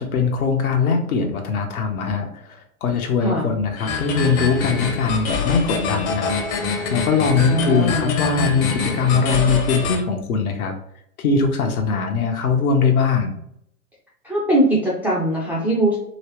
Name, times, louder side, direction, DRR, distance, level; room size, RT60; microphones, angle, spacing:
voice 1, 0.0-10.7 11.2-13.4, left 5 dB, 70° left, 3 dB, 1.0 m, -21 dB
sound 1, 3.8-10.0, left 4 dB, 40° left, 0.8 m, -25 dB
voice 2, 7.5-8.1 14.2-16.0, right 1 dB, 5° right, -7 dB, 0.3 m, -20 dB
3.1 x 2.9 x 3.0 m, 0.73 s
hypercardioid pair, 105°, 44 cm